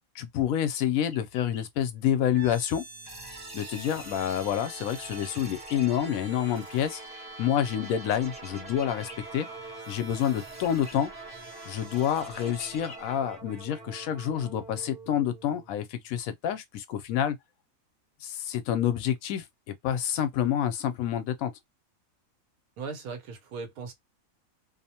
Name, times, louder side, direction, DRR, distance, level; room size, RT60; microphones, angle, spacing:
voice 1, 0.1-2.8 3.5-7.0 7.4-9.5 9.9-11.1 11.7-17.4 18.2-21.5, left 10 dB, 75° left, 1.0 m, -28 dB
sound 1, 1.1-1.7 3.2-4.4 5.0-5.9 8.4-9.5 10.6-11.0 12.0-12.1 12.3-13.1, left 4 dB, 50° left, 0.9 m, -50 dB
sound 2, 2.3-16.2, right 3 dB, 35° right, 0.9 m, -44 dB
voice 2, 22.8-23.9, right 5 dB, 85° right, 1.2 m, -38 dB
2.7 x 2.0 x 2.7 m
omnidirectional pair, 1.5 m